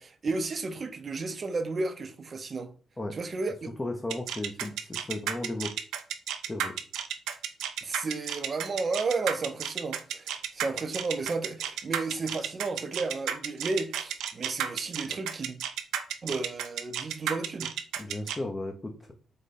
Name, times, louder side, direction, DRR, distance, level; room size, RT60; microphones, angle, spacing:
voice 1, 0.0-2.7 3.1-3.7 7.8-15.6 16.2-17.7, right 3 dB, 40° right, 0.6 m, -33 dB
voice 2, 3.8-5.7 6.5-6.8 18.0-19.1, left 2 dB, 20° left, 0.6 m, -35 dB
sound 1, 4.1-18.4, right 9 dB, 85° right, 0.5 m, -32 dB
4.9 x 2.2 x 4.0 m
cardioid pair, 90°, 0 cm